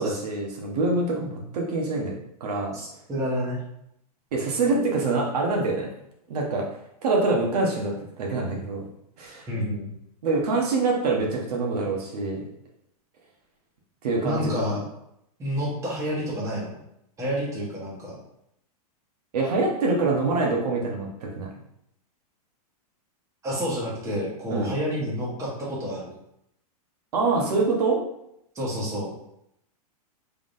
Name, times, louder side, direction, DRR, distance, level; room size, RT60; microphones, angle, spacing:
voice 1, 0.0-2.1 2.4-2.7 4.3-5.9 6.3-6.6 7.0-8.9 9.2-9.5 10.2-12.4 14.0-14.8 19.3-21.5 24.5-24.7 27.1-28.0, right 3 dB, 75° right, -1 dB, 1.0 m, -25 dB
voice 2, 2.7-3.6 9.5-9.9 14.2-14.8 15.4-16.7 17.2-18.2 23.4-26.1 28.5-29.1, equal, 15° right, -5 dB, 1.2 m, -29 dB
3.7 x 3.5 x 2.6 m, 0.78 s
supercardioid pair, 145°, 20 cm